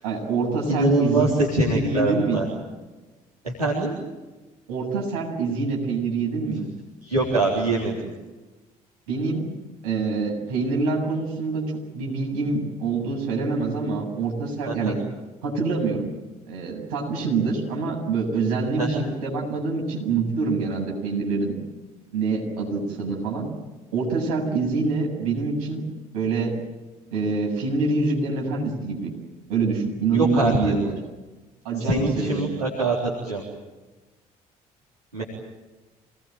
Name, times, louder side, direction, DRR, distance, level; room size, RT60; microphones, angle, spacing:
voice 1, 0.0-1.2 1.6-2.4 4.7-6.6 9.1-9.5 9.8-15.0 15.4-16.1 16.5-21.6 22.1-23.5 23.9-25.8 26.1-26.6 27.1-29.1 29.5-30.9 31.6-32.5, right 4 dB, 70° right, -1 dB, 8.0 m, -25 dB
voice 2, 0.7-2.5 3.4-4.0 7.0-8.1 14.7-15.0 18.8-19.0 30.1-30.8 31.8-33.0 33.2-33.4 35.1-35.2, right 2 dB, 90° right, -5 dB, 3.9 m, -23 dB
27.5 x 20.5 x 9.2 m, 1.1 s
figure-of-eight pair, 50°, 19 cm